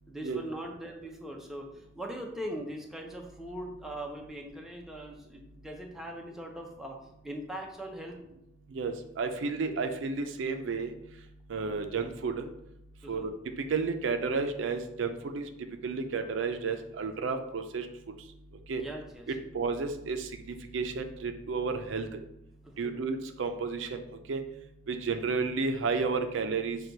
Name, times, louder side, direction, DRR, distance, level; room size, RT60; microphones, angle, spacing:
voice 1, 0.1-1.7 2.0-7.0 7.2-8.2 13.0-13.3 18.8-19.3 22.6-23.0, right 1 dB, ahead, 0 dB, 0.5 m, -40 dB
voice 2, 8.7-10.9 11.5-12.5 13.1-13.3 13.6-15.5 15.8-17.9 18.7-18.8 19.5-22.1 22.8-24.0 24.3-24.4 24.9-26.8, right 4 dB, 70° right, 6 dB, 0.4 m, -32 dB
6.0 x 2.3 x 3.9 m, 0.82 s
head